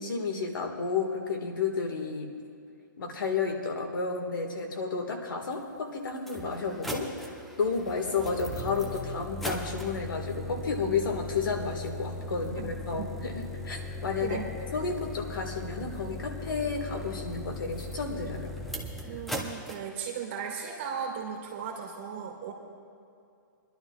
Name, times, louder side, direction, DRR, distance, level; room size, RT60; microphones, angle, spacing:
voice 1, 0.0-2.3 3.0-7.1 7.6-14.4 14.7-18.5, left 4 dB, 90° left, 3 dB, 1.8 m, -31 dB
sound 1, 5.5-5.6 6.2-19.8, left 2 dB, ahead, 0.5 m, -38 dB
voice 2, 14.2-14.5 19.1-22.5, right 7 dB, 35° right, -1 dB, 2.0 m, -36 dB
26.0 x 11.5 x 2.4 m, 2.5 s
hypercardioid pair, 170°, 11 cm